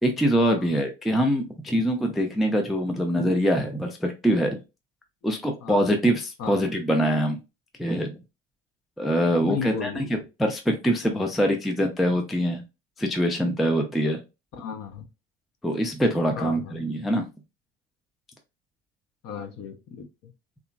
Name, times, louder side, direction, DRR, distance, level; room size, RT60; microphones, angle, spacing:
voice 1, 0.0-4.6 5.2-7.4 7.8-8.1 9.0-12.6 13.0-14.2 15.6-17.3, equal, ahead, 4 dB, 0.4 m, -24 dB
voice 2, 9.4-10.2 14.6-15.1 16.3-16.8 19.2-20.3, left 6 dB, 45° left, 6 dB, 0.7 m, -35 dB
2.8 x 2.5 x 2.2 m, 0.27 s
hypercardioid pair, 65°, 36 cm